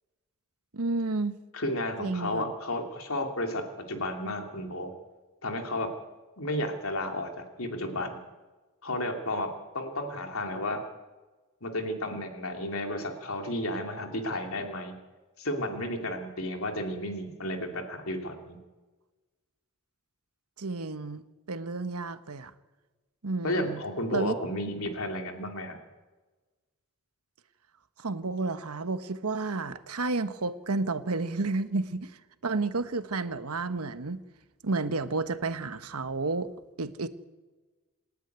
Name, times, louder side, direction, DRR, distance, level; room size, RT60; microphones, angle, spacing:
voice 1, 0.7-1.4 2.0-2.5 20.6-22.5 23.2-23.8 24.1-24.3 28.0-32.1 32.4-34.2 34.6-36.5 36.8-37.1, right 3 dB, 90° right, 1.2 m, -31 dB
voice 2, 1.5-4.9 5.4-5.9 6.4-8.2 8.8-10.8 11.6-14.9 15.4-18.6 23.4-25.8, left 1 dB, 70° left, 3.1 m, -32 dB
27.5 x 10.0 x 9.4 m
head